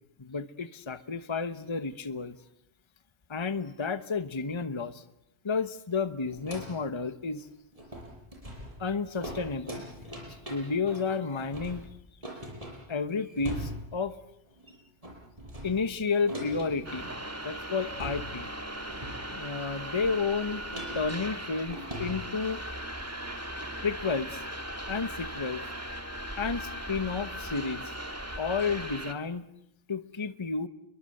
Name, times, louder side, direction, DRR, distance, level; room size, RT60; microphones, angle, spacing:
voice 1, 0.2-2.4 3.3-5.0 5.4-7.5 8.8-9.9 10.5-11.8 12.9-14.1 15.6-17.1 17.4-18.5 19.3-20.6 20.9-22.6 23.8-24.4 24.9-25.6 26.4-27.9 28.4-29.5 29.9-30.7, left 4 dB, 25° left, 12 dB, 1.1 m, -31 dB
sound 1, 6.3-6.9 7.3-7.4 7.7-14.1 14.5-14.8 15.0-17.2 17.6-17.7 17.9-18.6 18.8-19.6 20.7-22.2, equal, 30° right, 7.4 m, -42 dB
sound 2, 16.9-29.1, right 1 dB, 15° right, 1.9 m, -38 dB
29.5 x 23.0 x 7.8 m, 0.77 s
omnidirectional pair, 1.1 m